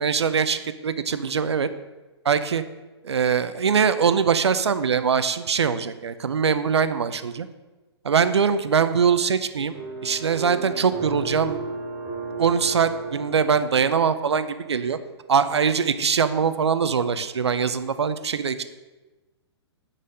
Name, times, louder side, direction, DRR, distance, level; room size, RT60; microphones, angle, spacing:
voice 1, 0.0-1.7 2.2-2.6 3.0-7.5 8.0-9.7 10.0-11.6 12.4-15.0 15.3-18.6, right 6 dB, 70° right, 12 dB, 0.5 m, -22 dB
sound 1, 9.7-14.9, right 3 dB, 35° right, 2.0 m, -34 dB
8.4 x 4.1 x 4.9 m, 1.2 s
figure-of-eight pair, 120°, 15 cm